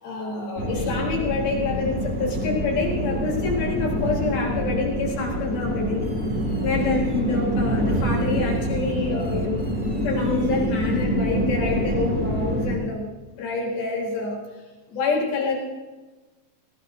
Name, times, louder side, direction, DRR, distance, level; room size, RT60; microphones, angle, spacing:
voice 1, 0.0-6.0 6.6-9.6 10.0-14.4 14.9-15.6, left 3 dB, 85° left, -2 dB, 5.6 m, -27 dB
sound 1, 0.6-12.7, equal, 15° right, 2.1 m, -26 dB
20.5 x 17.5 x 2.8 m, 1.2 s
omnidirectional pair, 4.2 m